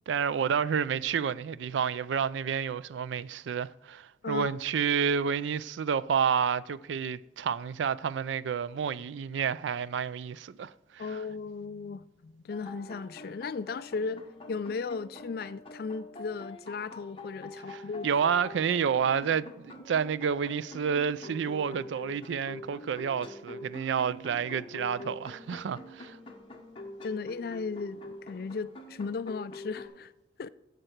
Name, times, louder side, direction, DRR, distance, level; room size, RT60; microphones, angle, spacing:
voice 1, 0.1-11.2 17.7-26.2, right 7 dB, 80° right, 0.4 m, -30 dB
voice 2, 11.0-18.1 27.0-30.1 30.4-30.5, left 4 dB, 55° left, 0.3 m, -36 dB
sound 1, 12.5-29.9, left 1 dB, 30° left, 1.1 m, -46 dB
14.0 x 6.6 x 4.5 m
head